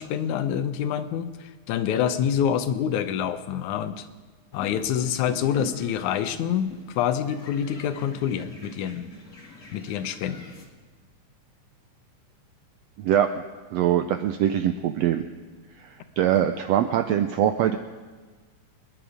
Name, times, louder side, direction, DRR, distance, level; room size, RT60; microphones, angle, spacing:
voice 1, 0.0-4.1 4.5-9.1 9.7-10.5, left 9 dB, 75° left, 11 dB, 2.2 m, -27 dB
sound 1, 4.5-10.7, left 4 dB, 30° left, 1.7 m, -43 dB
voice 2, 13.0-13.3 13.7-15.2 15.8-17.8, right 10 dB, 85° right, 8 dB, 1.5 m, -23 dB
25.5 x 10.5 x 5.0 m, 1.4 s
omnidirectional pair, 3.6 m